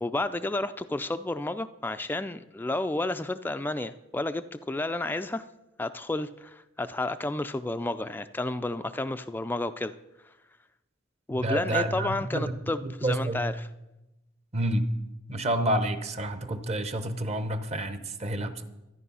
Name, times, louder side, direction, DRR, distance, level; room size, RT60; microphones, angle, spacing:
voice 1, 0.0-5.4 5.8-9.9 11.3-13.7, left 2 dB, 10° left, 10 dB, 0.3 m, -31 dB
voice 2, 11.3-12.5 12.8-13.4 14.5-14.9 15.3-18.6, right 1 dB, 35° right, 10 dB, 0.8 m, -29 dB
12.5 x 10.0 x 5.5 m, 0.98 s
head